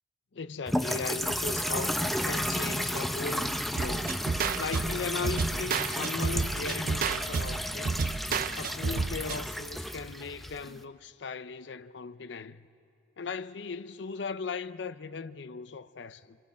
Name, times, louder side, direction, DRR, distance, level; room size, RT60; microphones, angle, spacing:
voice 1, 0.3-4.2 4.6-8.0 8.6-12.7 13.2-16.4, left 5 dB, 70° left, 0.6 m, -38 dB
sound 1, 0.7-10.8, equal, ahead, 0.6 m, -32 dB
sound 2, 3.8-9.4, right 5 dB, 50° right, 0.5 m, -31 dB
27.5 x 25.5 x 4.3 m
head